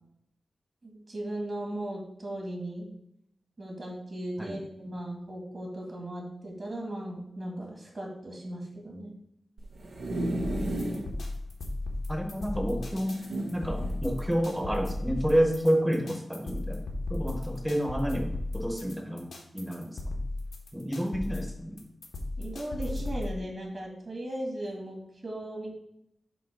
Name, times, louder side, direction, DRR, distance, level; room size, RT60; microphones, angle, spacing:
voice 1, 0.8-2.9 3.6-9.1 22.4-25.7, right 1 dB, 40° right, -1 dB, 2.0 m, -37 dB
sound 1, 9.6-11.1 11.6-11.7 11.9-12.0 13.1-14.0 14.7-14.9, right 1 dB, 80° right, 1.2 m, -33 dB
sound 2, 10.4-23.4, left 2 dB, 90° left, 1.4 m, -35 dB
voice 2, 12.1-13.2 13.5-16.8 17.1-20.0 20.7-21.8, equal, 5° right, 3 dB, 1.0 m, -29 dB
7.6 x 3.0 x 6.0 m, 0.75 s
wide cardioid pair, 145°, 0 cm